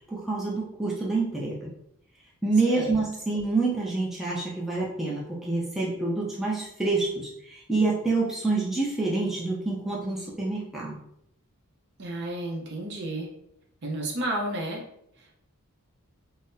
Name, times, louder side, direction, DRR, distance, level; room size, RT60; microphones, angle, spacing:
voice 1, 0.1-1.7 2.4-11.0, right 3 dB, ahead, -6 dB, 0.5 m, -27 dB
voice 2, 2.6-3.0 12.0-13.3 13.8-14.8, right 1 dB, 50° right, 0 dB, 0.7 m, -31 dB
3.9 x 2.0 x 2.6 m, 0.74 s
head